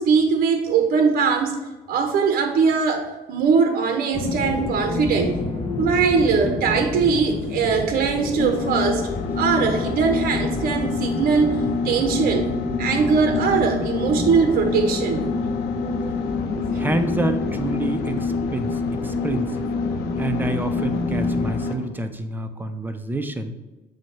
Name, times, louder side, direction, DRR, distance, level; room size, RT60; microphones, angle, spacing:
voice 1, 0.0-1.6 1.9-5.3 5.8-9.1 9.4-11.6 11.8-12.5 12.8-15.3, right 5 dB, 60° right, 5 dB, 0.8 m, -21 dB
sound 1, 4.1-21.6, left 3 dB, 30° left, 1.1 m, -29 dB
sound 2, 8.4-21.9, left 4 dB, 85° left, 0.7 m, -27 dB
voice 2, 16.7-19.6 20.2-23.5, right 1 dB, 10° right, 7 dB, 0.6 m, -28 dB
7.5 x 2.8 x 5.3 m, 1.1 s
cardioid pair, 110°, 17 cm